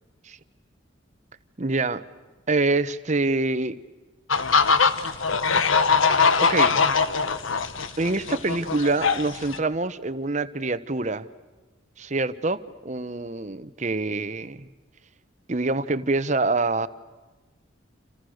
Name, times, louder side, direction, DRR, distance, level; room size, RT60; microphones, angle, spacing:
voice 1, 1.6-2.0 2.5-3.8 6.4-6.8 8.0-11.3 12.0-14.7 15.5-16.9, right 3 dB, 35° right, 14 dB, 0.9 m, -25 dB
sound 1, 4.3-9.6, left 5 dB, 85° left, 1.5 m, -21 dB
29.5 x 28.5 x 6.5 m, 1.3 s
head